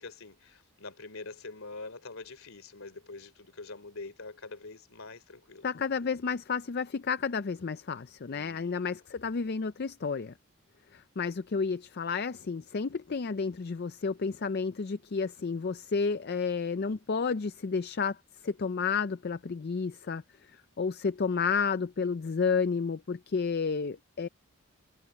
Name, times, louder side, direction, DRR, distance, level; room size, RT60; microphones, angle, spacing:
voice 1, 0.0-5.7 8.3-8.9 21.3-21.7, left 3 dB, 65° left, 3.3 m, -45 dB
voice 2, 5.6-10.3 10.9-18.2 18.4-20.2 20.8-24.3, left 5 dB, 45° left, 0.4 m, -31 dB
head